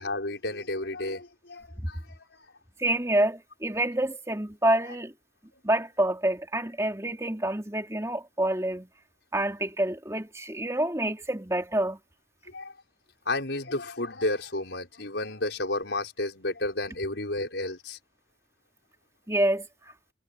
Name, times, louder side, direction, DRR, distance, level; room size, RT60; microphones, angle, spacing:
voice 1, 0.0-2.4 12.5-12.7 13.2-18.0, left 2 dB, 75° left, 4.9 m, -32 dB
voice 2, 2.8-5.1 5.6-8.9 9.3-12.0 19.3-19.9, right 1 dB, 15° right, 3.0 m, -27 dB
head